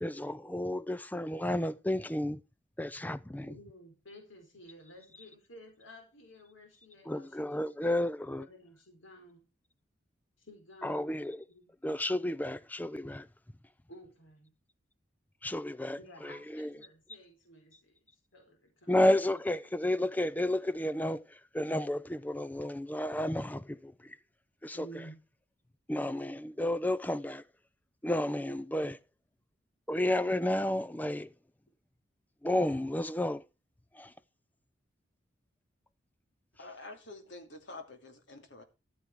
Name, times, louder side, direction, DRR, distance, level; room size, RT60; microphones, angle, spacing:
voice 1, 0.0-2.4 2.8-3.5 7.1-8.4 10.8-11.4 11.8-13.3 15.4-16.0 16.2-16.7 18.9-21.2 21.5-23.9 24.6-24.9 25.9-27.4 28.0-29.0 29.9-31.3 32.4-33.4 34.0-34.1, left 1 dB, 10° left, 0.5 m, -31 dB
voice 2, 3.4-8.1 8.4-9.4 10.4-11.6 13.9-14.5 15.9-19.4 24.7-25.2, equal, 85° left, 4.0 m, -53 dB
voice 3, 36.6-38.6, left 2 dB, 65° left, 2.7 m, -47 dB
14.0 x 7.2 x 4.8 m
head